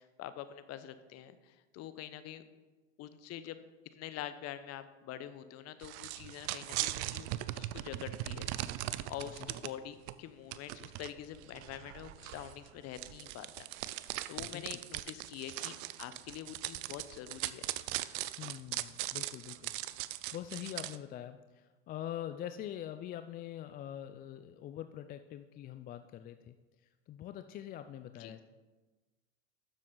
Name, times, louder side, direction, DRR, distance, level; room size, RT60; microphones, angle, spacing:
voice 1, 0.0-2.4 3.0-3.6 3.9-8.5 9.1-13.7 13.9-17.7 28.1-28.3, left 11 dB, 40° left, 12 dB, 0.8 m, -46 dB
sound 1, 5.8-9.7 10.1-10.2 10.5-21.0, right 16 dB, 50° right, 0.5 m, -40 dB
voice 2, 18.4-26.6 27.1-28.4, left 11 dB, 25° left, 9 dB, 0.4 m, -44 dB
12.0 x 7.3 x 3.9 m, 1.3 s
hypercardioid pair, 90°, 38 cm